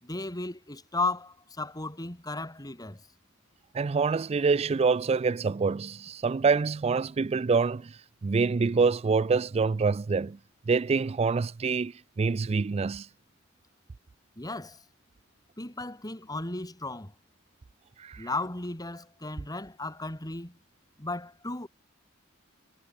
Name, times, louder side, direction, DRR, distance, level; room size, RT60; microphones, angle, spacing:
voice 1, 0.0-3.0 14.4-14.8 15.6-17.1 18.2-20.6 21.0-21.7, left 2 dB, 20° left, 2.9 m, -35 dB
voice 2, 3.7-7.9 8.2-10.4 10.7-11.9 12.2-13.1 18.0-18.3, right 4 dB, 30° right, 0.3 m, -26 dB
head